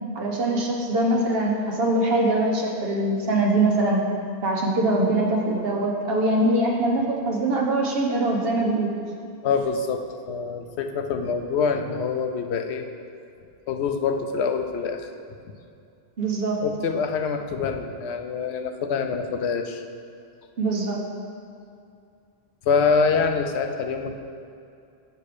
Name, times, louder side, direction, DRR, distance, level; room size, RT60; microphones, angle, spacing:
voice 1, 0.1-4.0 4.4-8.9 16.2-16.6 20.6-21.0, right 2 dB, 65° right, 0 dB, 1.2 m, -23 dB
voice 2, 9.4-12.9 13.7-15.1 16.6-19.8 22.7-24.2, left 5 dB, 85° left, 6 dB, 0.9 m, -25 dB
6.7 x 5.3 x 5.0 m, 2.5 s
omnidirectional pair, 1.1 m